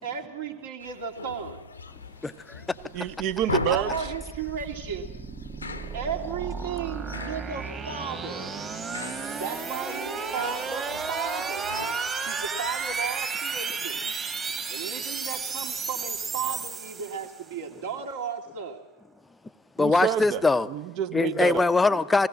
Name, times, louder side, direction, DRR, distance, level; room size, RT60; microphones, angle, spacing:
voice 1, 0.0-1.6 3.7-5.1 5.9-8.7 9.4-11.7 12.3-14.0 14.7-18.8, right 6 dB, 55° right, 2.3 m, -34 dB
sound 1, 0.8-13.3, left 4 dB, 75° left, 0.8 m, -40 dB
voice 2, 2.2-2.6 19.8-20.7 21.1-22.3, left 3 dB, 10° left, 0.7 m, -22 dB
voice 3, 2.9-3.9 19.8-20.4 20.7-21.7, right 11 dB, 40° right, 0.8 m, -28 dB
sound 2, 3.1-17.5, right 5 dB, 20° right, 2.0 m, -33 dB
21.0 x 17.0 x 7.6 m
figure-of-eight pair, 90°, 0 cm